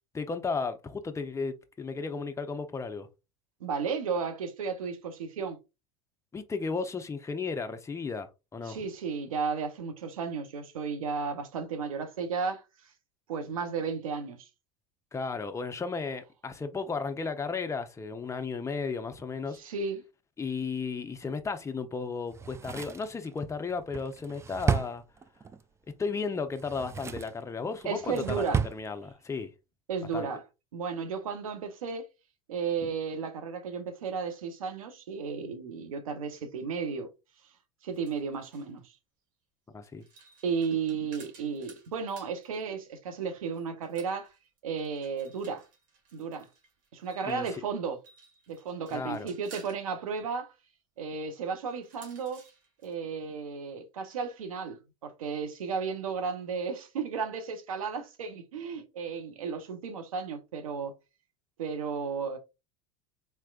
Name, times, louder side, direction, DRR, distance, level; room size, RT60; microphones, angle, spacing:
voice 1, 0.1-3.1 6.3-8.8 15.1-19.6 20.4-25.0 25.9-29.5 30.1-30.3 32.8-32.9 39.7-40.0 47.2-47.6 48.9-49.3, left 4 dB, 15° left, 0.7 m, -34 dB
voice 2, 3.6-5.6 8.6-12.6 13.3-14.5 19.5-20.1 27.8-28.6 29.9-30.4 30.7-32.1 32.5-37.1 37.8-38.8 40.4-44.3 44.6-45.6 46.1-46.5 46.9-48.0 48.5-50.5 51.0-52.4 52.8-60.9 61.6-62.4, right 5 dB, 85° right, 0.9 m, -34 dB
Drawer open or close, 22.3-25.6 26.5-27.4 27.8-28.8 29.1-29.2, right 6 dB, 15° right, 0.3 m, -33 dB
sound 1, 37.9-38.8 39.8-42.7 43.5-47.4 47.9-49.8 51.7-52.9, right 5 dB, 50° right, 1.9 m, -56 dB
4.4 x 3.3 x 2.4 m
hypercardioid pair, 85°, 17 cm